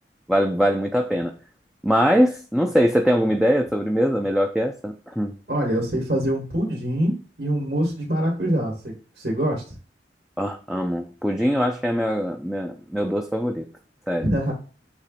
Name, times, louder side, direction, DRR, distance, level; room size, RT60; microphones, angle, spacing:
voice 1, 0.3-1.3 1.8-5.3 10.4-13.7 14.1-14.5, equal, ahead, 3 dB, 0.5 m, -22 dB
voice 2, 5.5-9.6 14.2-14.5, right 1 dB, 65° right, -3 dB, 2.7 m, -24 dB
8.0 x 3.1 x 4.2 m, 0.36 s
head